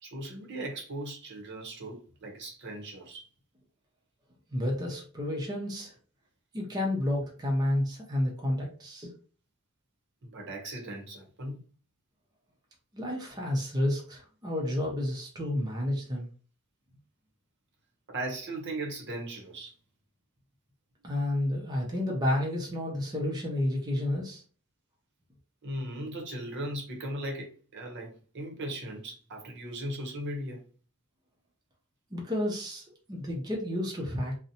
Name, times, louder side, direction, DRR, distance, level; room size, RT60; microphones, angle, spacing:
voice 1, 0.0-3.3 10.2-11.6 18.1-19.7 25.6-30.6, right 1 dB, 55° right, 0.7 m, -38 dB
voice 2, 4.5-5.9 6.5-9.1 12.9-16.3 21.0-24.4 32.1-34.3, left 1 dB, 20° right, 0.5 m, -30 dB
2.6 x 2.0 x 2.7 m
head